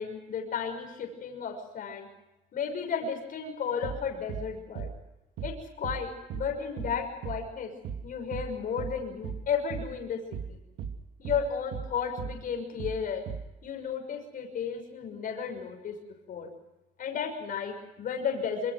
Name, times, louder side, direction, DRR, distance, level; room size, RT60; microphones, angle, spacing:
voice 1, 0.0-2.1 2.5-4.9 5.4-7.7 8.0-10.2 10.5-10.6 11.2-13.2 13.6-16.0 16.3-16.5 17.0-18.7, left 6 dB, 55° left, 4 dB, 6.2 m, -33 dB
sound 1, 3.8-4.0 4.3-4.5 4.8-5.0 5.4-5.6 5.8-6.0 6.3-6.5 6.8-7.0 7.2-7.4 7.8-8.0 8.3-8.5 8.8-9.0 9.2-9.4 9.7-9.9 10.3-10.5 10.8-11.0 11.3-11.5 11.7-11.9 12.2-12.4 12.8-13.0 13.3-13.5, right 7 dB, 75° right, 2.7 m, -36 dB
25.5 x 24.5 x 6.2 m, 0.97 s
cardioid pair, 110°, 17 cm